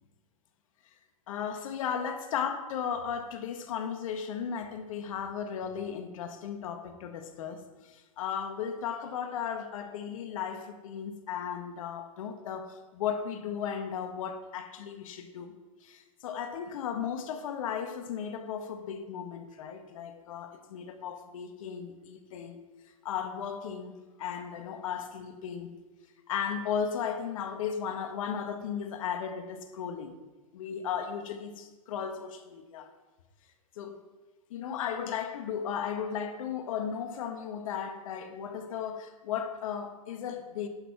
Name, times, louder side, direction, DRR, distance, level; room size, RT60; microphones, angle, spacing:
voice 1, 1.3-15.5 15.8-22.6 23.0-25.7 26.3-30.1 30.5-32.9 33.7-34.0 34.5-40.7, left 7 dB, 65° left, 1.4 m, -35 dB
11.0 x 6.8 x 5.9 m
hypercardioid pair, 115°, 18 cm